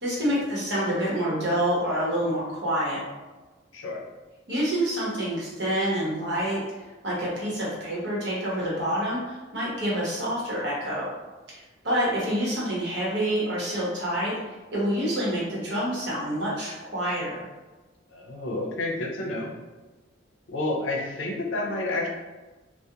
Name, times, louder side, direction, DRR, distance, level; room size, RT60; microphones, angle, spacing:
voice 1, 0.0-3.0 4.5-11.1 11.5-14.4 14.7-17.5, equal, 65° right, -5 dB, 0.9 m, -27 dB
voice 2, 3.7-4.0 18.1-19.5 20.5-22.1, left 2 dB, 85° left, -1 dB, 0.5 m, -30 dB
2.3 x 2.0 x 2.8 m, 1.2 s
head